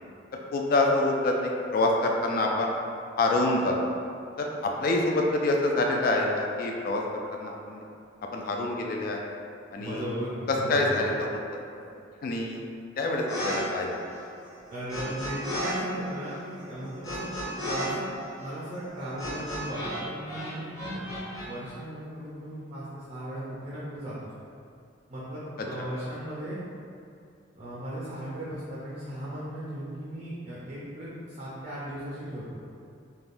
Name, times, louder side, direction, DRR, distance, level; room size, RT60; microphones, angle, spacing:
voice 1, 0.5-2.7 3.2-3.7 4.4-7.0 7.3-7.9 8.3-9.2 9.7-10.1 10.7-11.4 12.2-12.6 13.0-14.0 25.8-25.9, left 2 dB, 45° left, 0 dB, 0.3 m, -26 dB
voice 2, 9.8-11.0 14.7-17.3 17.6-18.1 18.4-21.2 21.4-24.3 25.1-26.6 27.6-32.6, right 1 dB, 40° right, -8 dB, 0.4 m, -37 dB
sound 1, 13.3-13.6 13.8-15.7 16.0-20.0 20.3-21.5, equal, 15° left, 0.7 m, -34 dB
3.4 x 2.2 x 2.5 m, 2.5 s
head